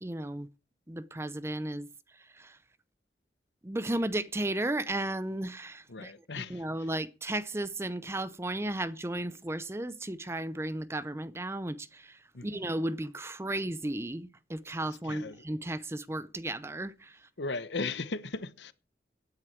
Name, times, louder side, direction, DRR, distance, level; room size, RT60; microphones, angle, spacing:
voice 1, 0.0-0.5 0.9-1.9 3.6-11.8 12.4-16.9, right 1 dB, 15° right, 0.6 m, -34 dB
voice 2, 5.9-6.9 12.3-12.7 15.0-15.4 17.4-18.7, left 3 dB, 80° left, 1.0 m, -37 dB
17.0 x 9.6 x 4.6 m
head